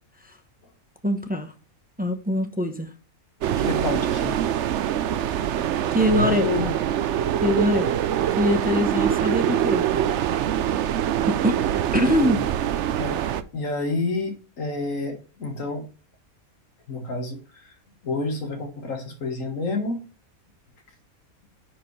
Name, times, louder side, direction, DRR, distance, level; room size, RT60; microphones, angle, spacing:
voice 1, 1.0-1.5 2.0-2.9 5.9-6.5 7.4-7.9 8.4-9.8 11.3-11.6 11.9-12.4, left 1 dB, 10° right, 0.6 m, -23 dB
sound 1, 3.4-13.4, right 10 dB, 65° right, 0.8 m, -24 dB
voice 2, 3.5-4.4 6.1-6.8 12.0-12.5 13.0-15.9 16.9-17.7 18.0-20.0, left 2 dB, 65° left, 1.9 m, -29 dB
10.0 x 4.7 x 3.2 m
omnidirectional pair, 1.5 m